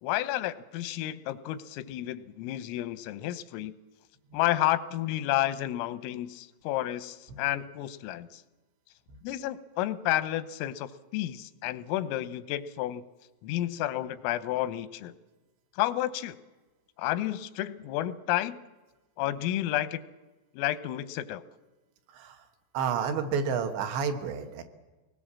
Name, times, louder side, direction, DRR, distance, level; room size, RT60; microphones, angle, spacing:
voice 1, 0.0-3.8 4.3-8.4 9.2-13.0 13.4-15.1 15.8-16.4 17.0-18.6 19.2-20.0 20.6-21.4, left 14 dB, 90° left, 13 dB, 3.5 m, -31 dB
voice 2, 22.1-22.4 22.7-24.6, right 6 dB, 70° right, 6 dB, 3.3 m, -30 dB
24.5 x 19.5 x 7.4 m, 1.2 s
omnidirectional pair, 5.8 m